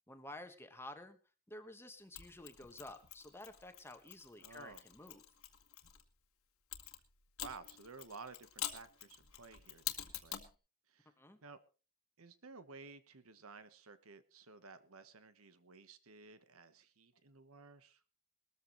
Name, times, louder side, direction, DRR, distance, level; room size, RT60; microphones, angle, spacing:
voice 1, 0.1-1.2 1.5-5.2 11.2-11.4, left 1 dB, 10° left, 8 dB, 1.4 m, -52 dB
Mechanisms, 2.1-6.0 6.7-10.5, left 12 dB, 75° left, 1.8 m, -47 dB
voice 2, 4.4-4.8 7.4-10.4 10.9-11.1 11.4-11.6 12.2-18.0, right 4 dB, 70° right, 12 dB, 1.2 m, -54 dB
20.5 x 13.5 x 3.2 m, 0.34 s
head